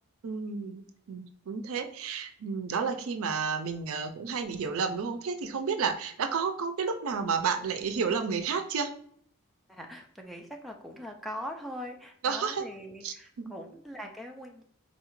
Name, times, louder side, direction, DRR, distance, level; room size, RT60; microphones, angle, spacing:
voice 1, 0.2-8.9 12.2-12.7 13.0-13.5, right 5 dB, 65° right, 7 dB, 0.4 m, -31 dB
voice 2, 9.7-14.6, equal, ahead, 1 dB, 0.3 m, -41 dB
4.0 x 2.4 x 3.0 m, 0.63 s
head